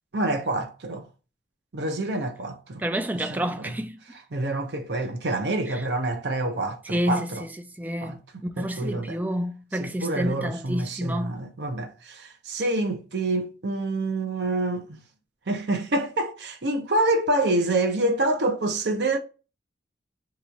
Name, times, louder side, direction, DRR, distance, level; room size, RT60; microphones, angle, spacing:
voice 1, 0.1-1.1 1.7-2.8 3.3-3.4 4.3-7.4 8.0-8.2 8.6-9.2 9.8-15.0 15.5-19.2, right 2 dB, 75° right, 0.7 m, -27 dB
voice 2, 2.8-4.0 5.7-5.9 6.8-7.5 7.8-11.4, equal, 10° right, 0.3 m, -29 dB
3.0 x 2.4 x 3.9 m
head